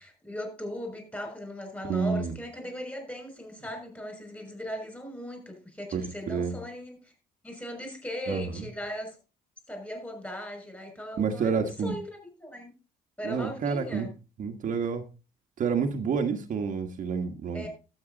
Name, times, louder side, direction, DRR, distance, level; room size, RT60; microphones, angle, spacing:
voice 1, 0.0-7.1 7.4-9.2 9.7-12.7 13.2-14.1 17.5-17.7, equal, 10° left, 5 dB, 5.9 m, -38 dB
voice 2, 1.9-2.4 5.9-6.6 8.3-8.7 11.2-11.9 13.2-14.1 14.4-15.0 15.6-17.7, right 6 dB, 50° right, 4 dB, 1.5 m, -29 dB
12.5 x 8.8 x 4.0 m, 0.32 s
cardioid pair, 110°, 17 cm